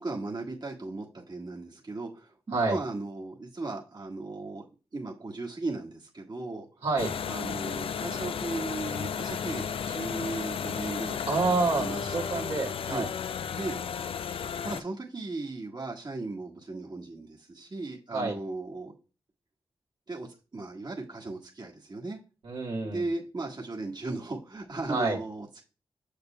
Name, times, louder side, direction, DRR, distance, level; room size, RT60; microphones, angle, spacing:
voice 1, 0.0-4.6 4.9-6.8 7.3-11.3 11.8-12.4 12.9-13.1 13.5-13.8 14.6-18.9 20.1-22.2 22.8-25.6, right 2 dB, 50° right, -2 dB, 1.5 m, -37 dB
voice 2, 6.8-7.1 11.3-13.1 18.1-18.4 22.4-23.0 24.9-25.2, right 3 dB, 90° right, -4 dB, 1.9 m, -28 dB
sound 1, 7.0-14.8, left 7 dB, 70° left, 0.3 m, -33 dB
6.7 x 6.5 x 2.2 m, 0.33 s
cardioid pair, 40°, 10 cm